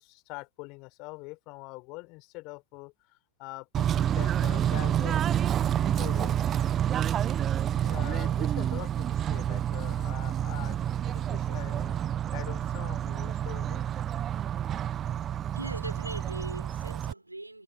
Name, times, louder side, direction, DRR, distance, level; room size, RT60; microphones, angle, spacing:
voice 1, 0.0-2.9 3.4-5.2 5.9-6.4 7.7-12.0 12.3-13.8, left 26 dB, 40° left, 4.5 m, -43 dB
Bird / Train, 3.7-17.1, right 10 dB, 25° right, 1.4 m, -29 dB
voice 2, 15.5-17.6, right 2 dB, 85° right, 5.8 m, -40 dB
figure-of-eight pair, 90°, 0 cm